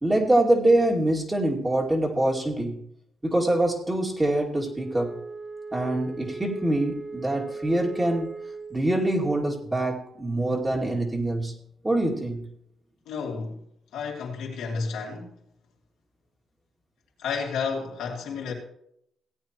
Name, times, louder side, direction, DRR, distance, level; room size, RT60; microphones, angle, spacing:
voice 1, 0.0-2.8 3.2-5.2 5.7-8.3 8.7-11.5 11.8-12.4, right 1 dB, 15° right, 2.4 m, -24 dB
Wind instrument woodwind instrument, 4.6-8.8, right 4 dB, 35° right, 2.9 m, -39 dB
voice 2, 13.1-13.5 13.9-15.3 17.2-18.5, left 5 dB, 85° left, 2.9 m, -31 dB
17.0 x 8.7 x 3.0 m
cardioid pair, 90°, 0 cm